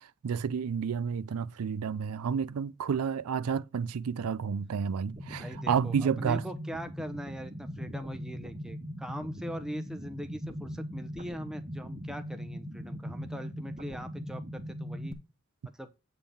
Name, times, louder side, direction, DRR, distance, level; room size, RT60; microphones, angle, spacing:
voice 1, 0.0-6.4, right 6 dB, 85° right, 0.4 m, -30 dB
sound 1, 5.1-15.1, equal, 25° right, 1.0 m, -40 dB
voice 2, 5.4-15.2 15.7-15.9, equal, 5° right, 0.7 m, -41 dB
8.5 x 3.8 x 6.9 m
head